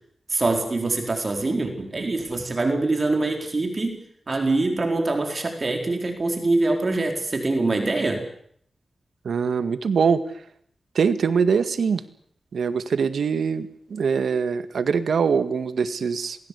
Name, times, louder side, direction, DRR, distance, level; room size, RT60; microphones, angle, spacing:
voice 1, 0.3-4.0 4.3-8.3, right 2 dB, 35° right, 3 dB, 4.5 m, -24 dB
voice 2, 9.2-10.2 11.0-12.0 12.5-16.4, right 6 dB, 90° right, 10 dB, 1.9 m, -23 dB
28.0 x 20.0 x 8.4 m, 0.66 s
wide cardioid pair, 140°, 0 cm